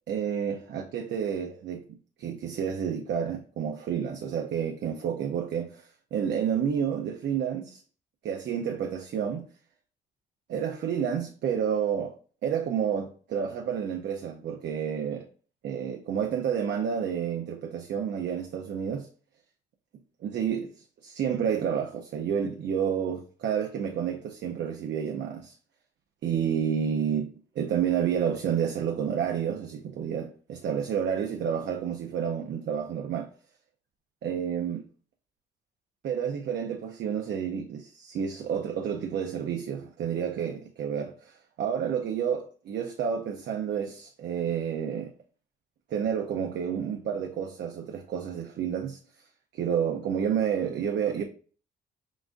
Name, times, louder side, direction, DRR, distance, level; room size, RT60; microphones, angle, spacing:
voice 1, 0.1-1.8 2.2-7.8 8.2-9.5 10.5-12.2 12.4-15.3 15.6-19.1 20.2-25.5 26.2-27.3 27.6-33.3 34.2-34.8 36.0-45.1 45.9-49.0 49.5-51.2, right 8 dB, 65° right, 0.6 m, -30 dB
6.0 x 2.4 x 2.4 m
cardioid pair, 90°, 20 cm